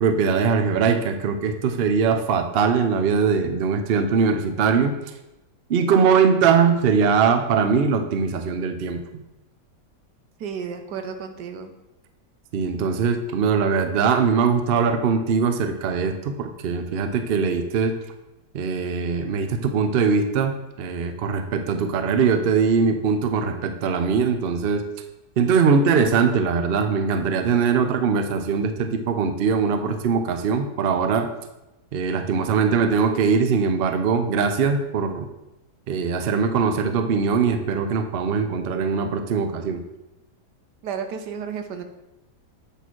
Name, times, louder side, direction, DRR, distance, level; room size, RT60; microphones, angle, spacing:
voice 1, 0.0-5.0 5.7-9.0 12.5-18.0 18.5-24.8 25.4-31.3 31.9-35.3 35.9-39.8, right 5 dB, 65° right, 7 dB, 0.5 m, -21 dB
voice 2, 10.4-11.7 40.8-41.8, right 6 dB, 80° right, 7 dB, 1.3 m, -32 dB
8.0 x 4.2 x 4.5 m, 0.96 s
omnidirectional pair, 1.8 m